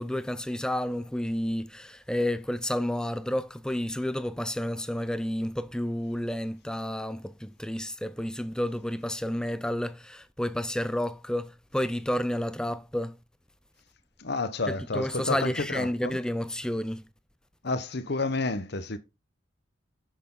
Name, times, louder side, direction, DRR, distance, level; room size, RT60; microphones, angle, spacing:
voice 1, 0.0-13.1 14.7-17.1, left 1 dB, 5° left, 0.4 m, -30 dB
voice 2, 14.2-16.2 17.6-19.0, left 3 dB, 55° left, 1.0 m, -30 dB
9.6 x 6.7 x 3.8 m
head